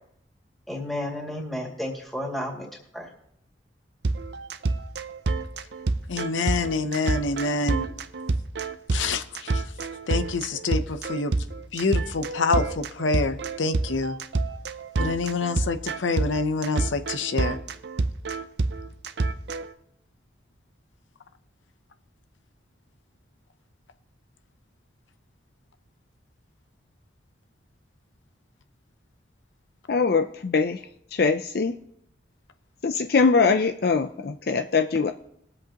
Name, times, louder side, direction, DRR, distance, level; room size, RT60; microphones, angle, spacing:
voice 1, 0.7-2.7 2.9-3.1, left 1 dB, ahead, -2 dB, 2.3 m, -32 dB
sound 1, 4.0-19.7, right 3 dB, 65° right, 0.6 m, -28 dB
voice 2, 6.1-7.9 8.9-11.5 11.7-14.2 15.0-17.6, left 3 dB, 85° left, 9 dB, 0.7 m, -27 dB
voice 3, 29.9-30.8 31.1-31.7 32.8-35.1, left 4 dB, 55° left, 7 dB, 0.4 m, -22 dB
21.0 x 7.8 x 2.9 m, 0.72 s
head